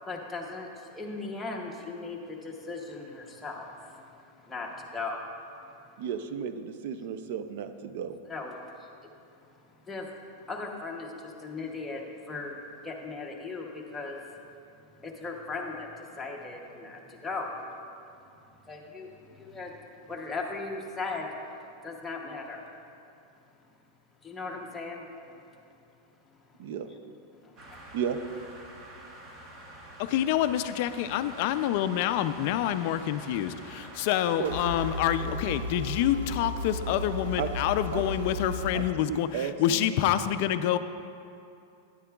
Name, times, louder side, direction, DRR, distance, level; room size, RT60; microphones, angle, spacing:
voice 1, 0.1-4.0 4.4-5.2 8.3-8.9 9.9-10.1 10.5-12.6 12.8-14.2 15.0-17.5 18.7-19.7 20.1-21.3 21.8-22.6 24.2-25.0 27.4-27.8, left 3 dB, 5° left, -2 dB, 0.8 m, -38 dB
voice 2, 6.0-8.2 26.6-26.9 27.9-28.2 34.4-34.5 35.3-35.4 37.4-37.5 37.9-38.0 38.7-39.9, right 8 dB, 55° right, 9 dB, 0.5 m, -34 dB
Traffic Background FX - light to heavy, 27.6-35.1, right 1 dB, 25° right, 0.9 m, -47 dB
voice 3, 30.0-40.8, left 11 dB, 45° left, 11 dB, 0.3 m, -27 dB
sound 1, 34.4-38.8, left 1 dB, 90° right, 1.0 m, -35 dB
12.0 x 10.5 x 2.3 m, 2.6 s
supercardioid pair, 165°, 0 cm